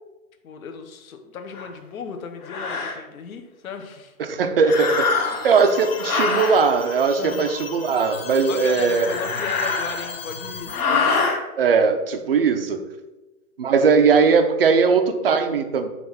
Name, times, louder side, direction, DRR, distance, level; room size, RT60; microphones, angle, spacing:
voice 1, 0.4-4.1 5.3-5.5 7.2-7.4 8.4-11.1, left 6 dB, 70° left, 6 dB, 1.0 m, -35 dB
sound 1, 1.5-1.7 2.4-3.0 4.6-5.5 6.0-6.6 8.8-10.2 10.7-11.4, left 4 dB, 90° left, 1.7 m, -24 dB
voice 2, 4.2-9.1 11.6-12.9 13.6-15.9, right 5 dB, 45° right, 7 dB, 0.4 m, -19 dB
sound 2, 4.7-10.8, left 6 dB, 45° left, 0.5 m, -36 dB
5.7 x 3.1 x 5.5 m, 1.1 s
hypercardioid pair, 175°, 43 cm